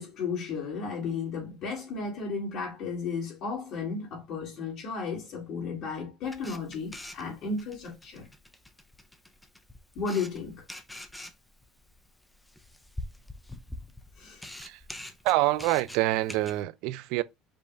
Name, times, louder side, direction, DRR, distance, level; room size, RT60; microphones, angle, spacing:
voice 1, 0.0-8.3 10.0-10.6 14.2-14.4, left 4 dB, 60° left, 2.1 m, -34 dB
Camera, 6.2-16.6, left 1 dB, 5° left, 0.5 m, -45 dB
voice 2, 15.2-17.2, right 18 dB, 70° right, 0.4 m, -26 dB
5.2 x 2.3 x 3.8 m
cardioid pair, 135°, 0 cm